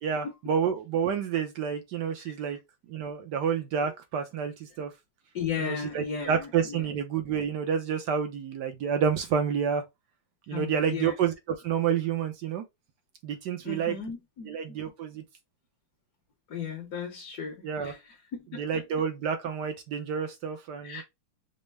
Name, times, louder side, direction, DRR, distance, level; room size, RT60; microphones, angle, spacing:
voice 1, 0.0-2.6 2.9-4.9 5.6-9.8 10.5-12.6 13.2-14.0 14.5-15.2 17.6-17.9 18.6-21.0, right 7 dB, 65° right, 1.1 m, -29 dB
voice 2, 2.2-2.5 3.8-3.9 5.3-6.9 10.5-11.1 13.6-14.8 16.5-18.8 20.8-21.0, left 6 dB, 55° left, 1.3 m, -36 dB
5.3 x 2.1 x 3.3 m
omnidirectional pair, 2.4 m